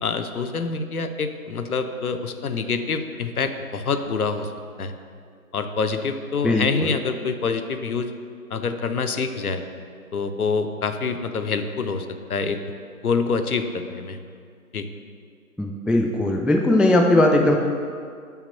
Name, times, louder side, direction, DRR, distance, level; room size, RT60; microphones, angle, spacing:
voice 1, 0.0-4.5 4.8-4.9 5.5-8.1 8.5-9.6 10.1-12.6 13.0-14.2 14.7-14.9, left 4 dB, 75° left, 8 dB, 0.7 m, -26 dB
voice 2, 6.4-6.9 15.6-17.6, left 1 dB, 5° right, 2 dB, 0.3 m, -19 dB
5.8 x 5.1 x 5.5 m, 2.2 s
figure-of-eight pair, 170°, 44 cm